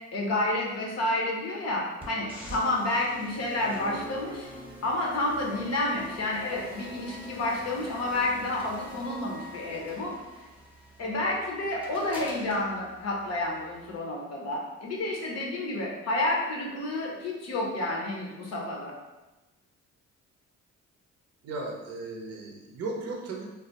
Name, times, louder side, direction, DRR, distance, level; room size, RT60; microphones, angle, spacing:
voice 1, 0.1-4.5 4.8-10.1 11.0-18.9, left 2 dB, 60° left, -2 dB, 0.7 m, -30 dB
sound 1, 2.0-14.0, equal, 5° right, 0.8 m, -45 dB
voice 2, 21.4-23.4, right 3 dB, 55° right, 0 dB, 0.5 m, -36 dB
2.3 x 2.0 x 3.8 m, 1.1 s
cardioid pair, 95°, 30 cm